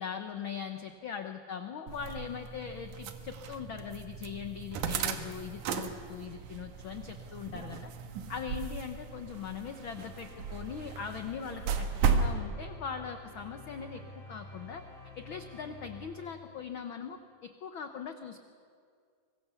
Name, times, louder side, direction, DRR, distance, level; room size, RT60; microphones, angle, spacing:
voice 1, 0.0-7.9 8.3-14.8 15.2-18.5, left 7 dB, 65° left, 7 dB, 1.2 m, -41 dB
sound 1, 1.9-12.3, right 6 dB, 90° right, 2.7 m, -35 dB
sound 2, 9.8-16.9, equal, 55° right, 7.7 m, -49 dB
24.5 x 22.0 x 6.9 m, 2.2 s
omnidirectional pair, 3.4 m